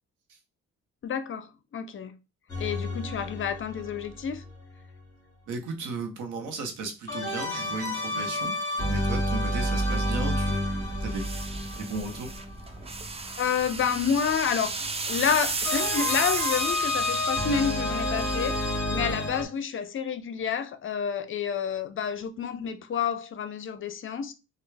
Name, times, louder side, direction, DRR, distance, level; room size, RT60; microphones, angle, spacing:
voice 1, 1.0-2.2 2.6-4.4 13.4-24.3, left 7 dB, 45° left, 0.5 m, -29 dB
sound 1, 2.5-4.5 7.1-13.0 15.6-19.4, left 1 dB, 10° left, 1.9 m, -30 dB
voice 2, 5.5-11.3 11.7-12.3, right 3 dB, 80° right, 1.0 m, -35 dB
sound 2, 10.8-19.4, right 3 dB, 20° right, 0.5 m, -34 dB
3.3 x 2.3 x 3.3 m
cardioid pair, 90°, 30 cm